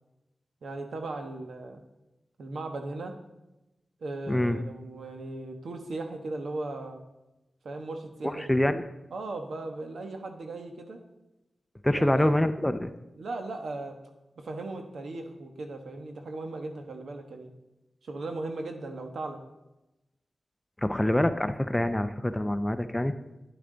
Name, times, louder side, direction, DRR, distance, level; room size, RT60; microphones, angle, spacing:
voice 1, 0.6-1.8 2.4-3.1 4.0-7.0 7.6-8.6 9.1-11.0 11.9-12.4 13.2-14.0 14.4-17.5 18.0-19.4, right 2 dB, 80° right, 5 dB, 1.2 m, -37 dB
voice 2, 4.3-4.6 8.2-8.8 11.8-12.9 20.8-23.1, left 1 dB, 10° left, 10 dB, 0.5 m, -25 dB
10.0 x 10.0 x 3.9 m, 0.98 s
wide cardioid pair, 115°, 0 cm